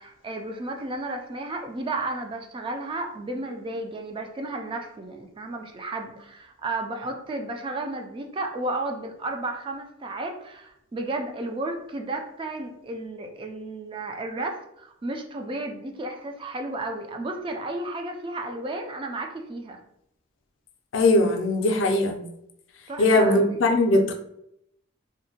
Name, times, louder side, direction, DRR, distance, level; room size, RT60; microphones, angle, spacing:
voice 1, 0.0-19.8 22.9-23.6, right 2 dB, 25° right, 4 dB, 0.3 m, -33 dB
voice 2, 20.9-22.2 23.0-24.1, left 2 dB, 70° left, 4 dB, 0.4 m, -20 dB
2.7 x 2.1 x 2.7 m, 0.77 s
head